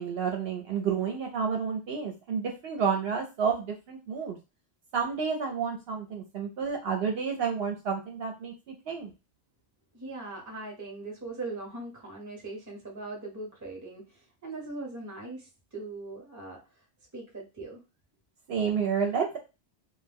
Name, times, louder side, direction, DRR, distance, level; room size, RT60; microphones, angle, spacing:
voice 1, 0.0-4.4 4.9-9.1 18.5-19.4, right 6 dB, 65° right, 2 dB, 0.8 m, -30 dB
voice 2, 9.9-16.6 17.1-17.8, right 2 dB, 20° right, 1 dB, 0.7 m, -40 dB
2.2 x 2.1 x 3.3 m, 0.28 s
omnidirectional pair, 1.2 m